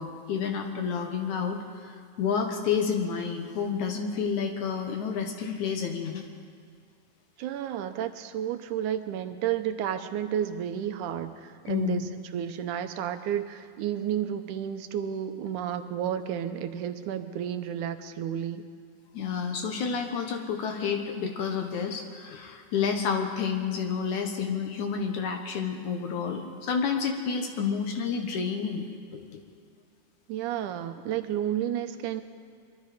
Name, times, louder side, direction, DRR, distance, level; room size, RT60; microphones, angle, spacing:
voice 1, 0.0-6.2 11.7-12.1 19.1-29.4, left 6 dB, 65° left, 4 dB, 2.5 m, -30 dB
voice 2, 7.4-18.7 30.3-32.2, right 10 dB, 75° right, 9 dB, 2.2 m, -31 dB
24.0 x 22.5 x 5.1 m, 2.1 s
omnidirectional pair, 3.9 m